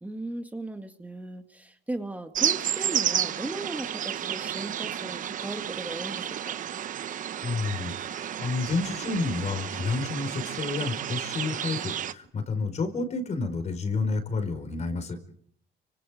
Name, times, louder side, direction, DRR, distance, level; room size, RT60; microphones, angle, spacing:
voice 1, 0.0-6.5, right 2 dB, 10° right, 5 dB, 1.9 m, -37 dB
sound 1, 2.3-12.1, right 10 dB, 50° right, 1.0 m, -31 dB
voice 2, 7.4-15.2, left 3 dB, 40° left, 9 dB, 4.8 m, -30 dB
30.0 x 25.5 x 5.0 m, 0.68 s
cardioid pair, 110°, 17 cm